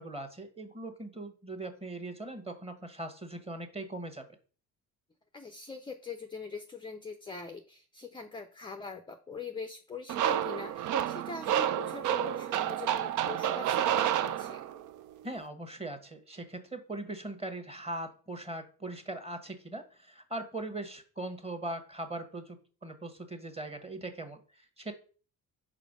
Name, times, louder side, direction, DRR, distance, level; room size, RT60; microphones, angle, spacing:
voice 1, 0.0-4.2 15.2-22.6 22.8-24.9, right 2 dB, 10° right, 7 dB, 1.3 m, -40 dB
voice 2, 5.3-14.6, left 4 dB, 10° left, 7 dB, 0.6 m, -43 dB
sound 1, 10.1-14.9, right 10 dB, 40° right, 0.5 m, -30 dB
5.0 x 4.1 x 5.0 m, 0.39 s
figure-of-eight pair, 50°, 47 cm